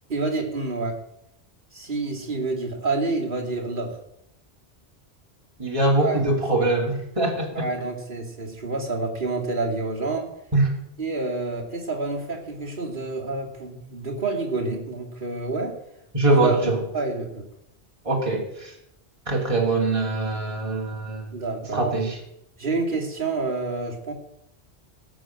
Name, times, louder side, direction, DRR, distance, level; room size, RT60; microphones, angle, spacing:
voice 1, 0.1-1.0 1.7-4.0 6.0-6.2 6.6-6.7 7.5-10.3 11.0-15.8 16.3-17.4 21.3-22.0 22.6-24.1, right 3 dB, 50° right, -2 dB, 3.0 m, -28 dB
voice 2, 5.6-7.7 10.5-10.7 16.1-16.8 18.0-18.7 19.3-21.3 21.7-22.2, right 2 dB, 30° right, -1 dB, 2.9 m, -23 dB
17.0 x 6.5 x 7.6 m, 0.77 s
omnidirectional pair, 1.1 m